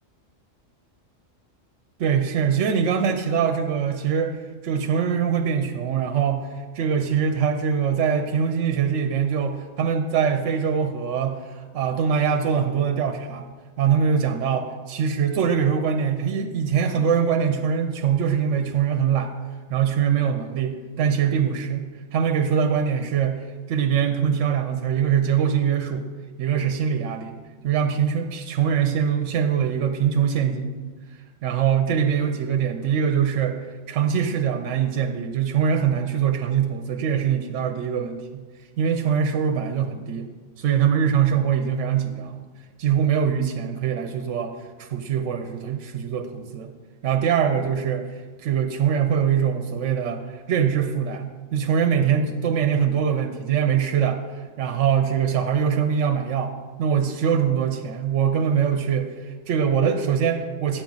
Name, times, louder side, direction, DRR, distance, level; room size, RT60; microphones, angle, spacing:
voice 1, 2.0-4.4 4.6-6.5 6.7-13.5 13.8-19.3 19.7-21.8 22.1-26.1 26.4-27.3 27.6-30.7 31.4-33.6 33.9-38.4 38.8-40.3 40.6-42.4 42.8-46.7 47.0-48.1 48.4-54.2 54.6-56.5 56.8-60.8, right 7 dB, 70° right, 6 dB, 0.9 m, -23 dB
8.6 x 7.2 x 3.9 m, 1.4 s
omnidirectional pair, 1.4 m